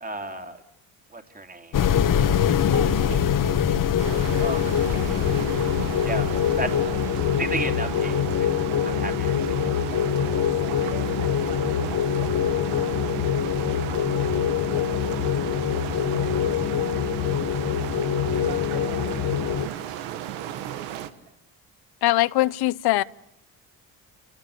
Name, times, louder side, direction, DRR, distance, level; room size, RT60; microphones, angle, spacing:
voice 1, 0.0-0.6 1.1-1.7 4.4-4.6 6.0-6.3 6.6-6.7 7.4-8.5 9.0-9.3, right 2 dB, 20° right, 3.0 m, -32 dB
sound 1, 1.7-19.7, left 8 dB, 50° left, 1.6 m, -24 dB
voice 2, 2.7-4.4 5.4-5.5 9.8-9.9 10.5-13.1 14.2-14.6 18.4-20.1 20.5-20.7 21.3-21.4, right 6 dB, 60° right, 5.0 m, -43 dB
sound 2, 4.0-21.1, right 11 dB, 90° right, 1.6 m, -34 dB
voice 3, 22.0-23.0, left 17 dB, 70° left, 0.8 m, -21 dB
29.5 x 17.5 x 8.4 m
supercardioid pair, 75°, 40 cm